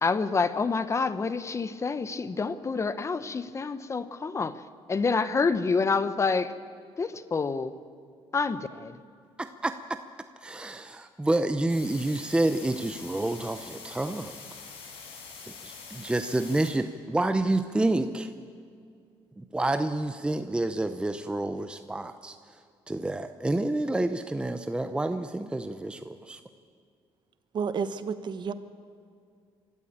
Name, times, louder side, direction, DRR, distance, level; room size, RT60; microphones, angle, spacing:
voice 1, 0.0-4.6 4.9-6.5 7.0-7.8 8.3-9.0, left 4 dB, 30° left, 13 dB, 0.9 m, -27 dB
voice 2, 9.4-9.7 10.4-14.3 15.4-18.3 19.4-22.4 22.9-26.4, right 2 dB, 10° right, 9 dB, 0.7 m, -28 dB
sound 1, 11.7-16.7, left 5 dB, 85° left, 4.9 m, -45 dB
voice 3, 27.5-28.5, right 6 dB, 50° right, 12 dB, 1.2 m, -30 dB
24.0 x 13.5 x 8.8 m, 2.3 s
cardioid pair, 105°, 10 cm